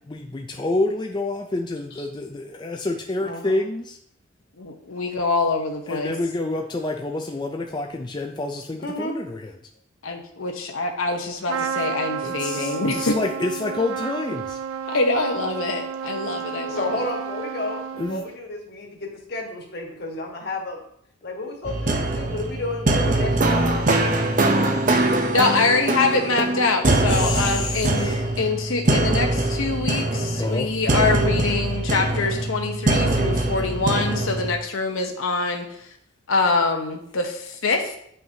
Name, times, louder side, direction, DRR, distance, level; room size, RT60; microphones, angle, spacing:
voice 1, 0.1-4.0 5.9-9.5 12.2-14.6 18.0-18.2 24.1-24.6 27.0-28.3 30.4-30.7, left 2 dB, 20° left, 2 dB, 0.4 m, -28 dB
voice 2, 3.2-3.6 8.8-9.1 16.7-20.8 21.2-23.9 24.2-24.6, left 2 dB, 50° left, 0 dB, 1.5 m, -32 dB
voice 3, 4.6-6.1 10.0-13.2 14.9-16.8 25.3-35.7 36.3-38.0, left 3 dB, 80° left, 3 dB, 0.9 m, -24 dB
Trumpet, 11.5-18.4, right 7 dB, 90° right, 0.4 m, -31 dB
sound 1, 21.6-34.6, right 2 dB, 40° right, 0.7 m, -22 dB
9.0 x 5.5 x 2.8 m, 0.70 s
head